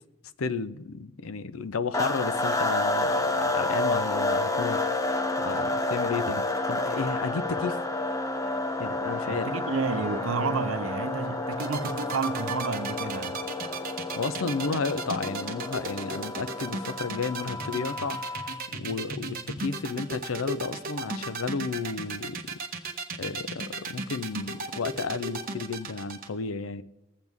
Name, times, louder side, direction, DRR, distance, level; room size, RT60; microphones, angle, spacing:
voice 1, 0.4-4.8 5.4-6.4 6.7-7.8 8.8-9.5 14.2-18.2 18.7-22.6 23.2-26.8, left 4 dB, 80° left, 0.6 m, -32 dB
sound 1, 1.9-18.6, left 2 dB, 15° left, 0.7 m, -30 dB
sound 2, 7.0-14.1, left 1 dB, 40° left, 2.7 m, -48 dB
voice 2, 9.3-13.4, right 4 dB, 75° right, 0.7 m, -31 dB
sound 3, 11.5-26.3, right 3 dB, 45° right, 1.2 m, -35 dB
20.0 x 8.1 x 3.6 m
head